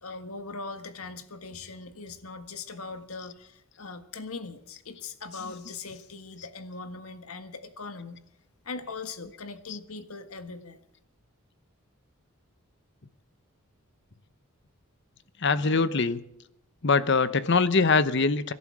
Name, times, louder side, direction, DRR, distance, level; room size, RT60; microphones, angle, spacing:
voice 1, 0.0-8.2 8.6-10.8, left 4 dB, 80° left, 9 dB, 1.7 m, -40 dB
voice 2, 15.4-16.2 16.8-18.5, left 4 dB, 55° left, 14 dB, 0.9 m, -23 dB
25.5 x 11.5 x 4.9 m, 0.83 s
head